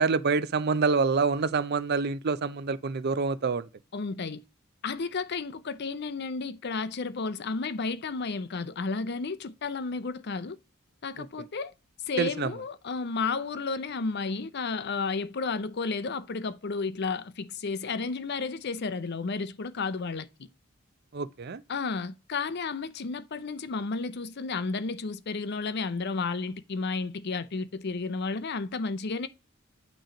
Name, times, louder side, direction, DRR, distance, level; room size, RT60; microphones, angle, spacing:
voice 1, 0.0-3.7 12.2-12.5 21.1-21.6, right 4 dB, 50° right, 0.5 m, -26 dB
voice 2, 3.9-4.4 4.8-10.6 11.0-11.7 12.1-20.3 21.7-29.3, left 4 dB, 50° left, 0.6 m, -32 dB
9.0 x 3.1 x 5.0 m
head